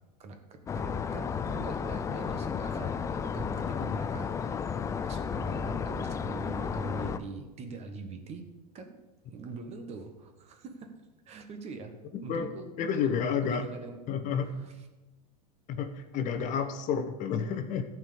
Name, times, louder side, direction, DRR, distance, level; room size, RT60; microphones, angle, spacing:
voice 1, 0.2-4.6 5.0-8.4 8.7-9.0 9.3-10.9 11.2-11.9 12.2-12.6 13.0-13.1 13.4-14.0 14.6-14.7, right 4 dB, 30° right, 5 dB, 1.3 m, -43 dB
sound 1, 0.7-7.2, left 6 dB, 15° left, 0.4 m, -33 dB
voice 2, 12.1-12.5 12.8-13.7 14.1-14.5 15.7-17.8, left 7 dB, 40° left, 8 dB, 0.9 m, -30 dB
13.5 x 4.7 x 6.9 m, 1.1 s
hypercardioid pair, 120°, 20 cm